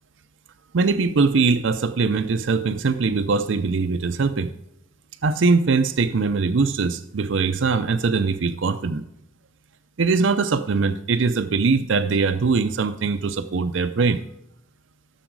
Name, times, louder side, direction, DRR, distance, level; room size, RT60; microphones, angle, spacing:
voice 1, 0.7-4.5 5.2-9.0 10.0-14.2, right 4 dB, 70° right, 10 dB, 0.5 m, -21 dB
14.0 x 7.1 x 4.7 m, 0.81 s
head